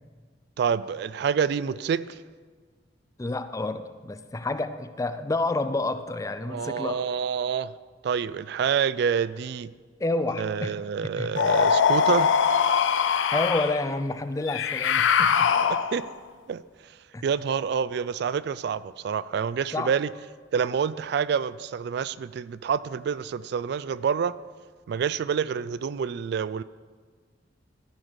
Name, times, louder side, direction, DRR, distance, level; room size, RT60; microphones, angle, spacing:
voice 1, 0.6-2.2 6.5-7.7 8.0-9.7 10.4-12.3 15.9-16.0 16.5-16.6 17.2-20.1 20.5-24.4 24.9-26.6, right 7 dB, 60° right, 17 dB, 0.3 m, -27 dB
voice 2, 3.2-7.0 10.0-10.8 11.2-11.3 13.3-15.5 17.1-17.2 19.7-19.9, left 2 dB, 20° left, 11 dB, 0.4 m, -29 dB
sound 1, 11.4-13.8 14.5-16.1, left 6 dB, 90° left, 0.5 m, -22 dB
13.5 x 5.1 x 6.3 m, 1.5 s
head